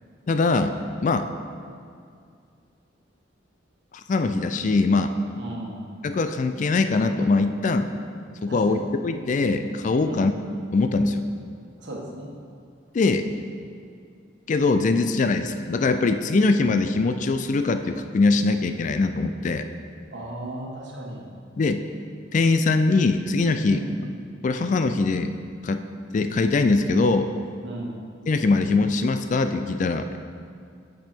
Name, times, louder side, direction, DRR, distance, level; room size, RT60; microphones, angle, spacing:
voice 1, 0.3-0.7 1.0-1.3 4.1-5.1 6.0-7.9 8.4-10.3 10.7-11.3 12.9-13.2 14.5-19.7 21.6-21.8 22.3-23.8 24.4-25.3 25.6-25.8 26.1-27.3 28.3-30.2, left 3 dB, 40° left, 8 dB, 0.3 m, -22 dB
voice 2, 5.3-5.9 8.5-8.8 10.0-10.3 11.8-12.3 20.1-21.3 23.6-24.0 27.6-28.0, right 1 dB, 65° right, -2 dB, 1.3 m, -36 dB
8.7 x 5.4 x 4.4 m, 2.3 s
head